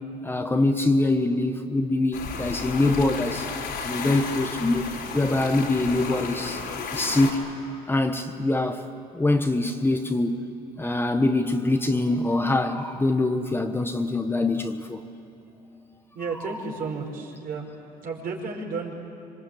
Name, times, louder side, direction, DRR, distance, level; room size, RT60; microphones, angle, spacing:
voice 1, 0.2-3.5 3.8-4.9 5.1-6.6 6.9-7.4 7.9-8.8 9.1-10.4 10.8-15.0, left 2 dB, 15° left, 1.2 m, -24 dB
sound 1, 2.1-7.3, left 5 dB, 80° left, 4.0 m, -33 dB
voice 2, 16.1-17.7 18.0-18.9, right 4 dB, 60° right, 5.3 m, -32 dB
26.5 x 24.5 x 8.7 m
cardioid pair, 110°, 17 cm